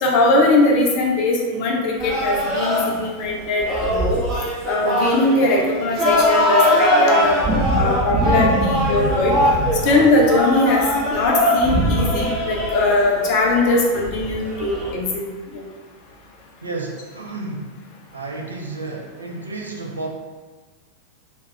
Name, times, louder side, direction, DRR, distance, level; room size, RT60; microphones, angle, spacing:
voice 1, 0.0-4.2 4.6-7.4 7.7-9.4 9.8-10.8 11.1-15.3 15.5-15.6, left 2 dB, 45° left, -1 dB, 0.5 m, -20 dB
sound 1, 2.0-14.9, equal, 20° right, 0.7 m, -21 dB
voice 2, 16.6-17.7 18.1-20.1, right 2 dB, 75° right, 0 dB, 0.4 m, -31 dB
2.3 x 2.0 x 3.1 m, 1.4 s
figure-of-eight pair, 90°, 0 cm